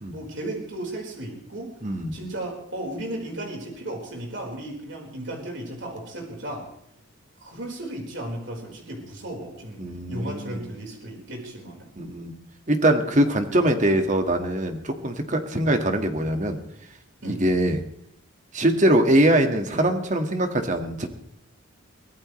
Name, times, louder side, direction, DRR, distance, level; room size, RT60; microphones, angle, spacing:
voice 1, 0.1-1.7 2.1-6.7 7.4-11.9 17.2-17.4, right 1 dB, 60° right, 0 dB, 4.5 m, -35 dB
voice 2, 1.8-2.1 9.8-10.7 12.0-12.4 12.7-16.6 17.2-17.8 18.5-21.1, right 1 dB, 35° right, 5 dB, 1.8 m, -22 dB
24.0 x 17.5 x 3.2 m, 0.71 s
head